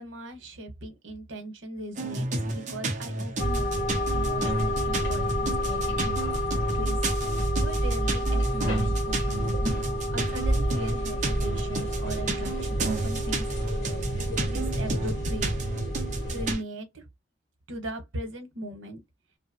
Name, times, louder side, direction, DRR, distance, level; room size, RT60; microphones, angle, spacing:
voice 1, 0.0-6.3 6.7-9.7 10.1-14.0 14.4-15.5 15.9-17.1 17.7-19.0, right 1 dB, 90° right, 0.9 m, -39 dB
sound 1, 2.0-16.6, right 2 dB, 40° right, 0.6 m, -32 dB
sound 2, 3.4-16.5, equal, 70° left, 0.9 m, -28 dB
2.6 x 2.0 x 2.5 m
head